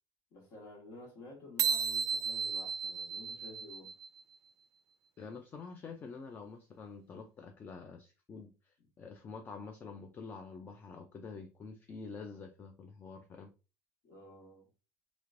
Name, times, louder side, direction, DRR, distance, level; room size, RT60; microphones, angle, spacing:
voice 1, 0.3-3.9 14.0-14.6, left 2 dB, 60° left, 1.6 m, -52 dB
sound 1, 1.6-4.2, right 6 dB, 55° right, 0.3 m, -34 dB
voice 2, 5.2-13.5, left 4 dB, 30° left, 0.4 m, -47 dB
3.1 x 2.9 x 2.5 m
supercardioid pair, 120°, 7 cm